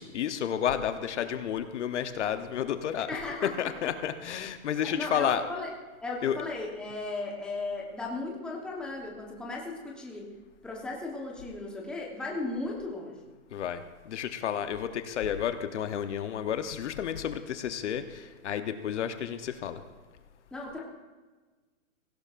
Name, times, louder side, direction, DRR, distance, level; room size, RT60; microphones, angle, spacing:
voice 1, 0.0-3.1 3.6-5.4 6.2-6.4 13.5-19.8, left 9 dB, 55° left, 9 dB, 0.9 m, -31 dB
voice 2, 3.0-3.7 4.8-5.7 6.0-10.3 10.6-13.3 20.5-20.8, left 2 dB, ahead, -2 dB, 1.0 m, -36 dB
17.0 x 16.5 x 2.5 m, 1.3 s
hypercardioid pair, 155°, 41 cm